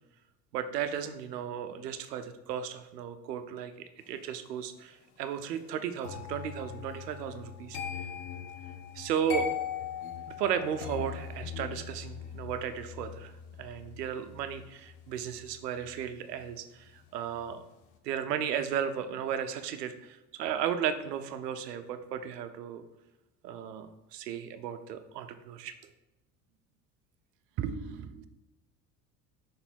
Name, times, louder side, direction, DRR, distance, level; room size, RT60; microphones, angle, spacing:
voice 1, 0.5-7.8 8.9-9.5 10.4-13.3 13.6-17.6 18.0-22.8 23.4-25.7, right 8 dB, 80° right, 10 dB, 0.7 m, -35 dB
sound 1, 6.0-17.0 17.3-17.7, left 8 dB, 65° left, 1.0 m, -40 dB
voice 2, 27.6-28.3, right 7 dB, 30° right, 10 dB, 0.4 m, -35 dB
6.8 x 3.4 x 4.4 m, 0.99 s
hypercardioid pair, 70°, 48 cm